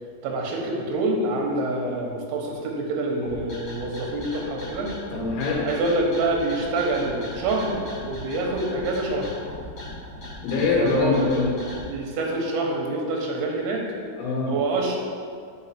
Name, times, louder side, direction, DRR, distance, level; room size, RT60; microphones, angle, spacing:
voice 1, 0.2-4.9 5.6-9.3 10.7-11.2 11.9-13.9 14.5-15.0, right 2 dB, 85° right, 0 dB, 3.1 m, -26 dB
sound 1, 3.2-11.8, left 1 dB, 55° left, 1.1 m, -38 dB
voice 2, 5.1-5.7 10.4-11.5 14.2-14.5, left 4 dB, 80° left, -3 dB, 3.4 m, -23 dB
6.4 x 5.0 x 5.7 m, 2.2 s
omnidirectional pair, 4.5 m